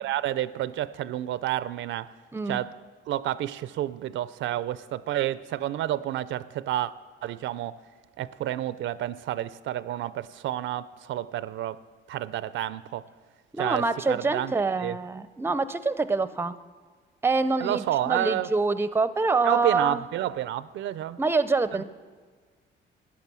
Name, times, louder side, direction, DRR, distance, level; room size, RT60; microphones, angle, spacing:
voice 1, 0.0-2.1 2.5-2.7 3.1-6.9 7.2-7.8 8.2-11.8 12.1-13.1 13.6-14.5 14.8-15.0 17.6-18.5 19.4-21.2, right 13 dB, 75° right, 0.4 m, -30 dB
voice 2, 13.5-16.5 17.2-20.0 21.2-21.8, right 3 dB, 10° right, 0.5 m, -25 dB
13.0 x 10.0 x 6.1 m
cardioid pair, 90°, 20 cm